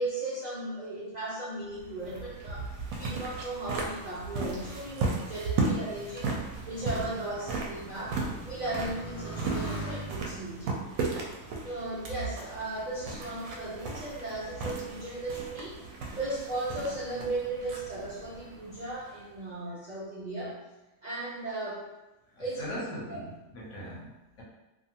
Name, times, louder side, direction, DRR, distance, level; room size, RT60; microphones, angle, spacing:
voice 1, 0.0-6.4 6.6-10.7 11.6-15.8 16.1-20.6 21.0-21.9 22.4-22.8 23.1-23.2, right 2 dB, 55° right, -9 dB, 0.4 m, -36 dB
sound 1, 1.7-19.4, right 3 dB, 70° right, 0.9 m, -36 dB
Motorcycle, 5.4-12.7 13.5-14.0, right 2 dB, 85° left, 1.3 m, -45 dB
voice 2, 22.4-24.4, equal, 60° left, -4 dB, 0.9 m, -40 dB
2.6 x 2.4 x 2.7 m, 1.0 s
omnidirectional pair, 1.6 m